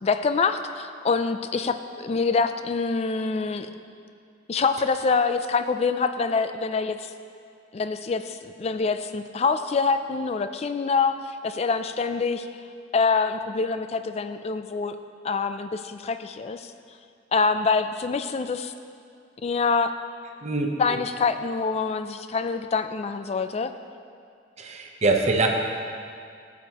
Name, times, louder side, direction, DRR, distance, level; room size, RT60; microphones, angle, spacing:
voice 1, 0.0-3.7 4.5-7.1 7.7-11.1 11.4-12.5 12.9-15.0 15.2-16.7 17.3-18.7 19.4-19.9 20.8-23.7, left 4 dB, 35° left, 10 dB, 0.3 m, -25 dB
voice 2, 20.4-20.8 24.6-25.5, right 3 dB, 35° right, 2 dB, 0.7 m, -23 dB
14.0 x 7.2 x 2.9 m, 2.3 s
head